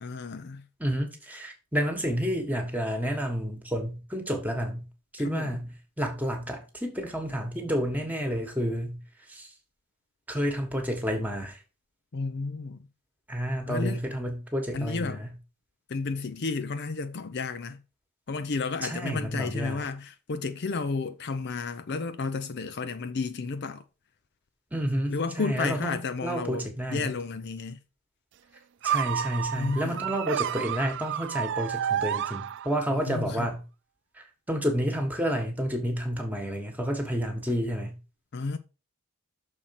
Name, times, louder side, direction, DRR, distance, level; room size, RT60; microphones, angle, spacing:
voice 1, 0.0-0.6 5.2-5.6 12.1-12.9 13.7-14.0 14.7-15.2 15.9-17.8 18.3-23.8 25.1-27.8 29.5-30.1 32.9-33.5 38.3-38.6, left 4 dB, 50° left, 0.5 m, -32 dB
voice 2, 0.8-4.9 5.1-5.7 6.0-9.0 9.3-9.5 10.3-11.6 13.3-15.3 18.8-19.8 24.7-27.1 28.8-33.6 34.2-38.0, equal, 5° right, 1.4 m, -30 dB
sound 1, 28.8-33.0, right 9 dB, 50° right, 0.3 m, -30 dB
6.4 x 4.4 x 5.8 m
head